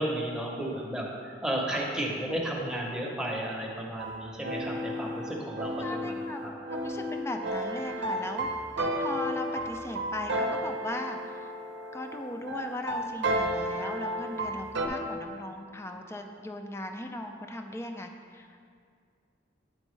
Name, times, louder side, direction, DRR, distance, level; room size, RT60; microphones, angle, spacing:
voice 1, 0.0-6.2 6.4-6.5, right 1 dB, 5° right, -3 dB, 0.7 m, -33 dB
sound 1, 4.0-14.9, right 1 dB, 65° right, 0.6 m, -33 dB
voice 2, 5.8-6.4 6.7-8.5 9.0-11.5 11.9-18.5, left 1 dB, 15° left, 4 dB, 0.3 m, -38 dB
8.7 x 4.4 x 3.1 m, 2.2 s
head